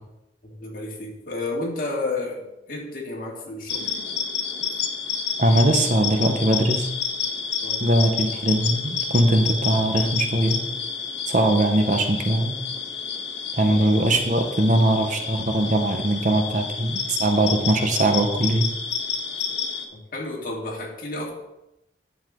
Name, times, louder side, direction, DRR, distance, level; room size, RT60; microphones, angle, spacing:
voice 1, 0.4-3.9 7.6-7.8 13.7-13.9 20.1-21.3, left 2 dB, 50° left, -2 dB, 2.2 m, -31 dB
sound 1, 3.7-19.9, left 6 dB, 85° left, 1.5 m, -29 dB
voice 2, 5.4-6.9 7.8-10.6 11.3-12.6 13.6-18.7, right 1 dB, 45° right, 5 dB, 1.0 m, -21 dB
10.5 x 7.4 x 3.8 m, 0.92 s
head